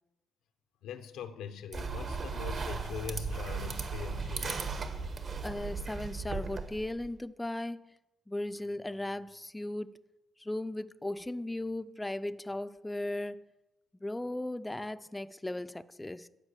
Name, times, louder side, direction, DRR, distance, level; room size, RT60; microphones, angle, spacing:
voice 1, 0.8-4.7, left 8 dB, 85° left, 0.7 m, -42 dB
sound 1, 1.7-7.1, right 4 dB, 50° right, 1.1 m, -36 dB
voice 2, 5.4-7.9 8.3-10.0 10.4-13.5 14.0-16.3, left 1 dB, 10° left, 0.4 m, -37 dB
10.5 x 4.9 x 8.1 m
cardioid pair, 90°, 0 cm